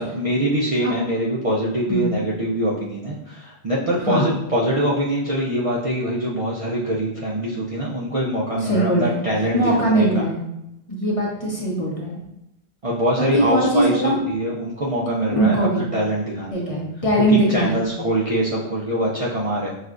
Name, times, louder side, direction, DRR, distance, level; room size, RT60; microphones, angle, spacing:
voice 1, 0.0-9.6 9.9-10.1 12.8-15.6 15.9-16.6 17.5-19.7, right 1 dB, 45° right, -5 dB, 0.5 m, -23 dB
voice 2, 1.9-2.2 4.0-4.3 8.6-9.2 9.5-10.4 10.9-12.2 13.2-14.2 15.4-15.9 16.5-17.8, right 1 dB, 35° left, -3 dB, 0.8 m, -20 dB
6.2 x 2.3 x 2.5 m, 0.85 s
omnidirectional pair, 1.1 m